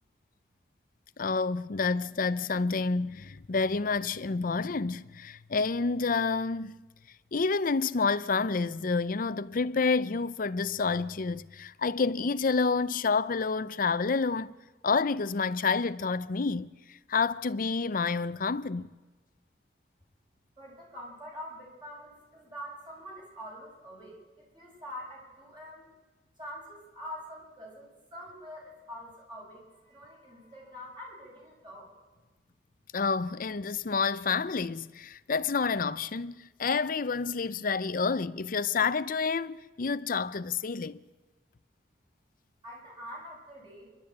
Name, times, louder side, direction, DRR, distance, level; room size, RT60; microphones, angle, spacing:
voice 1, 1.2-6.7 7.3-14.5 14.8-18.9 32.9-41.0, left 4 dB, 50° left, 0.6 m, -29 dB
voice 2, 20.6-25.9 26.4-31.9 42.6-43.9, equal, 25° right, 6.9 m, -45 dB
28.5 x 12.0 x 8.6 m
head